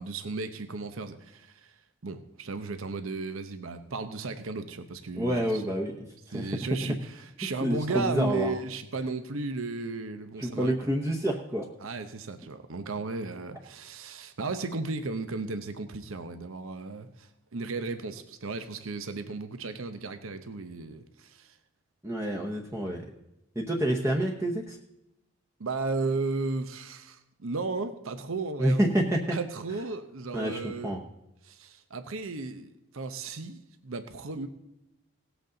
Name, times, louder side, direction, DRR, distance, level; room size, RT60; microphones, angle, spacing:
voice 1, 0.0-1.7 2.0-5.6 6.3-10.9 11.8-21.6 25.6-28.8 29.3-31.0 31.4-34.5, right 3 dB, 75° right, 9 dB, 0.8 m, -35 dB
voice 2, 5.1-5.9 6.3-6.7 7.6-8.5 10.4-11.7 22.0-23.0 23.6-24.8 28.6-29.4 30.3-31.0, right 1 dB, 15° right, -1 dB, 0.8 m, -28 dB
18.0 x 8.1 x 3.9 m, 0.88 s
head